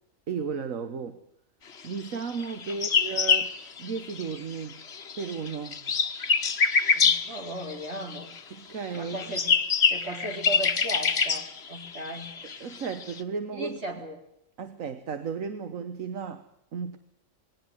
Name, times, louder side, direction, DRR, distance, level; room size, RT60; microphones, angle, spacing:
voice 1, 0.3-1.2 1.8-3.5 3.8-4.8 5.2-5.9 8.5-9.2 12.6-13.8 14.6-17.0, right 5 dB, 75° right, 10 dB, 1.7 m, -34 dB
sound 1, 2.3-4.5 4.8-8.4 8.9-13.2, left 5 dB, 55° left, 1.4 m, -26 dB
voice 2, 6.9-8.3 8.9-9.5 9.9-12.3 13.5-14.2, right 1 dB, 55° right, 3 dB, 4.4 m, -36 dB
21.0 x 18.5 x 9.8 m, 0.76 s
omnidirectional pair, 1.4 m